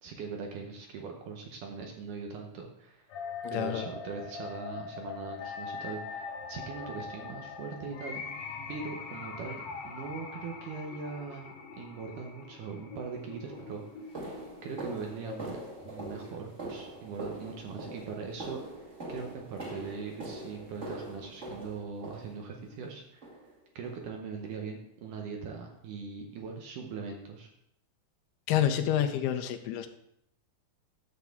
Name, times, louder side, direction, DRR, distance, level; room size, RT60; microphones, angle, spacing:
voice 1, 0.0-3.1 3.5-13.8 14.6-23.3 23.8-27.5, right 5 dB, 70° right, 2 dB, 2.1 m, -41 dB
sound 1, 3.1-17.1, left 5 dB, 70° left, 1.8 m, -42 dB
voice 2, 3.4-3.9 28.5-29.9, left 10 dB, 90° left, 7 dB, 2.7 m, -28 dB
sound 2, 12.8-13.0 13.5-22.7 23.2-23.6 23.8-24.0 24.4-24.6 25.0-25.1 25.7-25.8, right 1 dB, 30° right, 1.5 m, -43 dB
9.5 x 7.2 x 3.5 m, 0.74 s
omnidirectional pair, 4.4 m